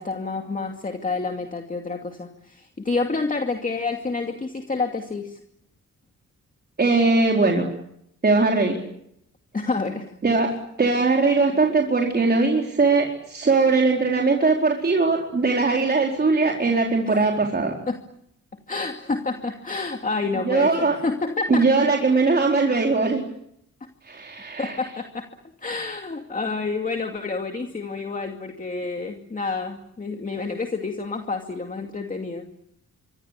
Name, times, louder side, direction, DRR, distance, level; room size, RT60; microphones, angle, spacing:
voice 1, 0.0-5.4 9.5-10.2 17.1-17.3 17.9-18.0 18.7-21.7 24.6-25.3 25.6-32.4, left 3 dB, 25° left, 4 dB, 2.5 m, -29 dB
voice 2, 6.8-7.7 8.2-8.8 10.2-10.5 10.8-17.7 20.5-21.0 21.5-23.2 24.1-24.8, right 3 dB, 30° right, 0 dB, 4.3 m, -20 dB
26.0 x 25.0 x 8.3 m, 0.75 s
wide cardioid pair, 160°, 31 cm